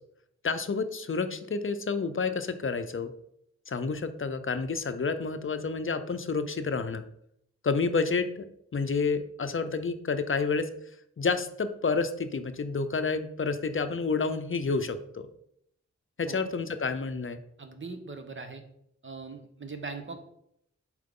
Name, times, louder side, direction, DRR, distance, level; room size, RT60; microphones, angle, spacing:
voice 1, 0.4-3.1 3.7-7.0 7.6-10.7 11.2-15.3 16.2-17.4, left 4 dB, 45° left, 10 dB, 0.6 m, -29 dB
voice 2, 17.6-18.6 19.0-20.2, right 4 dB, 40° right, 7 dB, 1.0 m, -40 dB
7.5 x 4.8 x 3.7 m, 0.73 s
wide cardioid pair, 90°, 29 cm